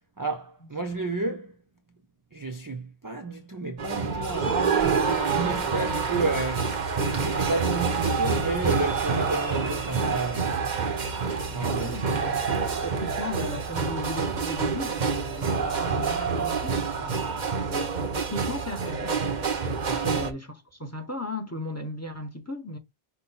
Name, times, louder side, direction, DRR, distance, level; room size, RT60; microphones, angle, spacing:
voice 1, 0.2-1.5 2.3-10.6 11.5-12.0 19.8-20.1, right 3 dB, 30° right, 0.4 m, -31 dB
sound 1, 3.8-20.3, right 5 dB, 50° right, 0.9 m, -27 dB
voice 2, 11.8-12.3 12.8-17.2 17.5-19.6 19.9-22.8, left 1 dB, 15° left, 0.8 m, -36 dB
5.6 x 2.3 x 4.0 m
omnidirectional pair, 1.1 m